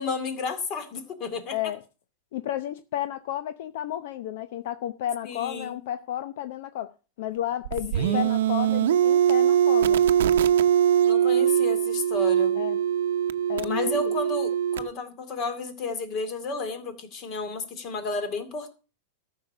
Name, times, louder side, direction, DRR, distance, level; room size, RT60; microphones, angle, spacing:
voice 1, 0.0-1.6 5.2-5.8 7.9-8.3 11.0-12.6 13.6-18.7, left 3 dB, 30° left, 2.3 m, -32 dB
voice 2, 1.5-1.8 2.3-6.9 7.2-10.0 12.5-12.8 13.5-14.1, left 12 dB, 60° left, 0.7 m, -32 dB
sound 1, 7.6-14.9, right 9 dB, 85° right, 0.8 m, -22 dB
14.0 x 6.4 x 6.6 m
supercardioid pair, 165°, 0 cm